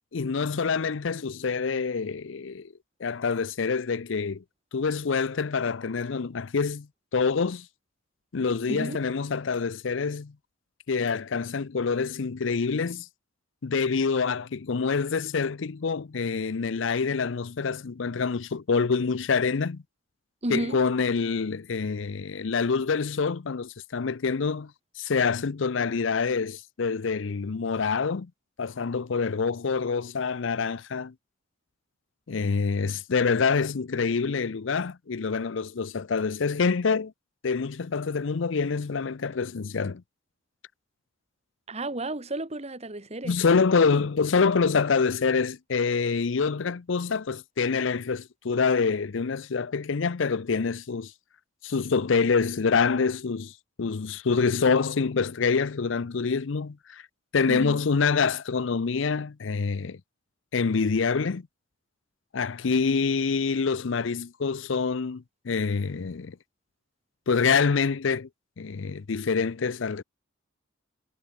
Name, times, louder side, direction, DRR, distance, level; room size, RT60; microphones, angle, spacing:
voice 1, 0.1-2.7 3.0-4.4 4.7-6.9 7.1-7.7 8.3-10.3 10.9-13.1 13.6-19.8 20.5-24.7 25.0-28.3 28.6-31.1 32.3-37.1 37.4-40.0 43.2-51.1 51.6-53.5 53.8-57.0 57.3-60.0 60.5-61.4 62.3-66.4 67.3-68.3 68.6-70.0, left 5 dB, 65° left, 0.6 m, -26 dB
voice 2, 8.7-9.0 20.4-20.8 41.7-43.3 57.5-57.8, right 1 dB, 35° right, 2.2 m, -32 dB
head